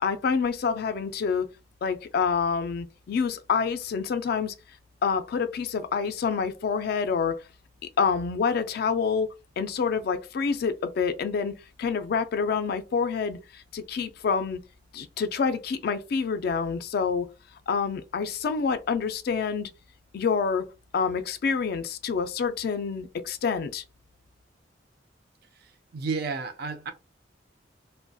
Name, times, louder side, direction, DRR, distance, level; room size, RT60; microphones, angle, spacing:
voice 1, 0.0-1.5 1.8-4.5 5.0-7.4 8.0-9.3 9.6-11.5 11.8-14.6 14.9-17.3 17.7-19.7 20.1-20.6 20.9-23.8, left 5 dB, 55° left, 0.3 m, -27 dB
voice 2, 25.9-26.9, right 4 dB, 55° right, 0.4 m, -31 dB
2.6 x 2.1 x 2.2 m
head